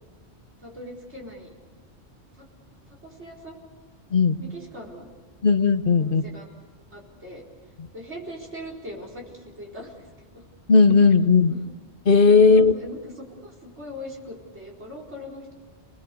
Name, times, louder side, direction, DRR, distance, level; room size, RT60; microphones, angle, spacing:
voice 1, 0.6-1.5 2.3-2.5 2.9-3.5 4.4-5.1 6.0-6.5 6.9-7.4 7.9-10.5 11.5-11.6 12.4-15.5, equal, 80° right, -1 dB, 5.0 m, -40 dB
voice 2, 5.4-6.2 10.7-11.5 12.1-12.7, left 4 dB, 55° left, 10 dB, 1.0 m, -16 dB
29.0 x 20.0 x 6.9 m, 1.4 s
omnidirectional pair, 1.1 m